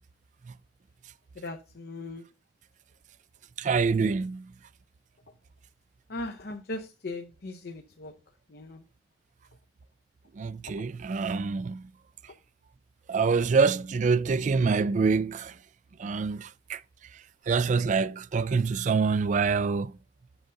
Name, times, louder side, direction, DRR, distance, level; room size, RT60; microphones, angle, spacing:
voice 1, 1.4-2.3 6.1-8.1 8.5-8.8, left 2 dB, 60° left, 0.7 m, -38 dB
voice 2, 3.6-4.5 10.4-11.8 13.1-15.5 16.0-16.8 17.5-19.9, right 5 dB, 45° right, 0.3 m, -26 dB
8.0 x 6.5 x 3.7 m
head